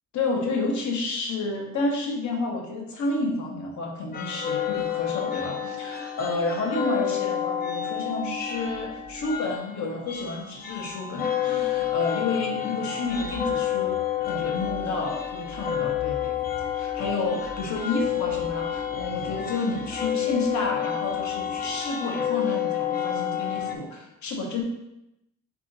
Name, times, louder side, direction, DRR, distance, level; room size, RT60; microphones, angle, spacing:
voice 1, 0.1-24.6, left 3 dB, 70° left, 0 dB, 1.1 m, -30 dB
sound 1, 4.1-23.8, left 10 dB, 30° left, 0.5 m, -29 dB
3.8 x 3.0 x 4.0 m, 0.87 s
cardioid pair, 90°, 30 cm